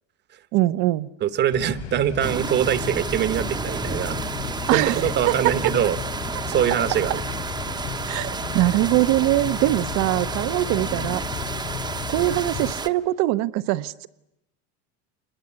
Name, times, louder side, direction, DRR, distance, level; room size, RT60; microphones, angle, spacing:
voice 1, 0.5-1.1 4.7-5.7 8.1-11.2 12.1-14.1, right 17 dB, 55° right, 15 dB, 0.9 m, -22 dB
voice 2, 1.2-6.0 6.5-7.2, right 10 dB, 35° right, 14 dB, 1.1 m, -23 dB
sound 1, 1.5-12.7, left 11 dB, 60° left, 3.1 m, -34 dB
sound 2, 2.2-12.9, right 4 dB, 15° right, 0.9 m, -31 dB
27.0 x 21.0 x 9.7 m, 0.89 s
supercardioid pair, 140°, 32 cm